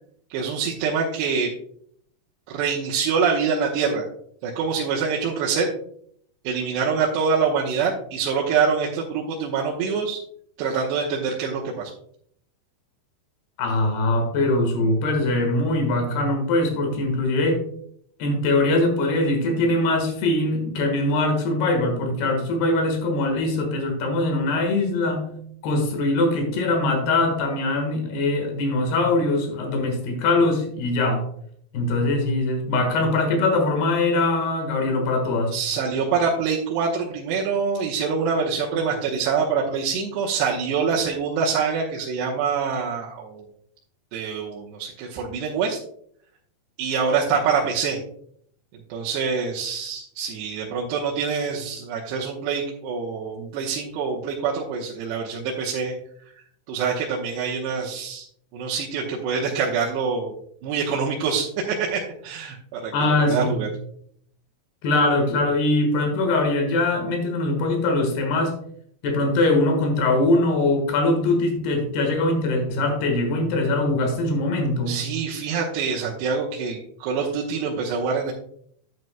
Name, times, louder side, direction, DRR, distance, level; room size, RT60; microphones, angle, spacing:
voice 1, 0.3-1.5 2.5-4.1 4.4-5.7 6.4-10.2 10.6-11.9 35.5-43.4 44.1-45.8 46.8-48.0 48.9-55.9 56.3-56.4 56.7-58.2 58.5-60.3 60.6-63.7 74.9-78.3, right 5 dB, 85° right, -3 dB, 3.1 m, -25 dB
voice 2, 13.6-17.6 18.2-25.3 25.6-31.2 31.7-35.5 62.9-63.6 64.8-68.6 69.0-75.0, left 2 dB, 70° left, 3 dB, 3.5 m, -22 dB
11.0 x 9.1 x 2.2 m, 0.65 s
omnidirectional pair, 4.8 m